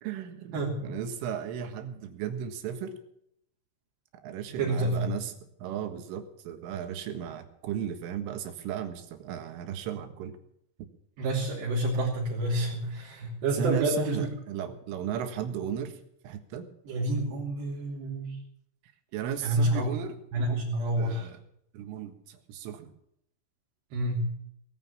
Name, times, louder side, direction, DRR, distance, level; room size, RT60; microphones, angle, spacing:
voice 1, 0.0-3.0 4.2-5.3 5.6-10.4 13.5-16.0 16.2-16.7 19.1-20.2 21.0-21.4 21.7-22.9, right 9 dB, 90° right, 7 dB, 4.1 m, -35 dB
voice 2, 0.5-0.8 4.6-5.1 11.2-14.3 16.9-18.4 19.4-19.9 20.3-21.3 23.9-24.2, right 1 dB, 65° right, -4 dB, 4.9 m, -28 dB
19.5 x 9.5 x 7.2 m, 0.73 s
omnidirectional pair, 5.6 m